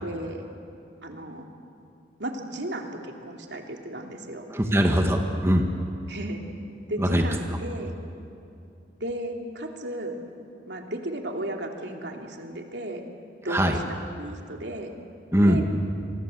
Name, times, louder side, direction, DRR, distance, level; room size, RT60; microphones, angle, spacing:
voice 1, 0.0-0.4 1.0-1.4 2.2-4.5 6.1-6.4 6.9-7.9 9.0-10.2 10.7-13.0 13.4-14.9 15.4-15.6, right 1 dB, 80° right, 2 dB, 3.0 m, -34 dB
voice 2, 4.5-5.7 7.0-7.2 13.5-13.8 15.3-15.6, equal, 15° right, 3 dB, 1.7 m, -21 dB
29.0 x 24.0 x 7.9 m, 2.6 s
head